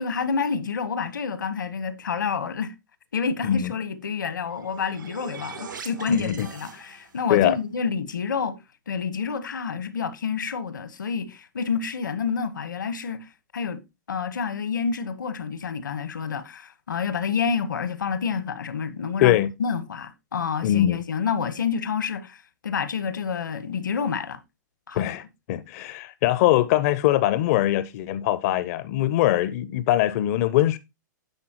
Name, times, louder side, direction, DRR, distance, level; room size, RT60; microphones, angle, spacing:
voice 1, 0.0-2.7 3.1-8.6 8.9-13.8 14.1-24.4 24.9-25.2, left 6 dB, 85° left, 1.2 m, -28 dB
sound 1, 4.3-7.3, right 6 dB, 90° right, 2.5 m, -42 dB
voice 2, 6.1-6.5 7.3-7.6 19.2-19.5 20.6-21.0 24.9-25.2 25.5-30.8, left 13 dB, 50° left, 0.6 m, -22 dB
10.5 x 7.1 x 3.0 m
hypercardioid pair, 115°, 10 cm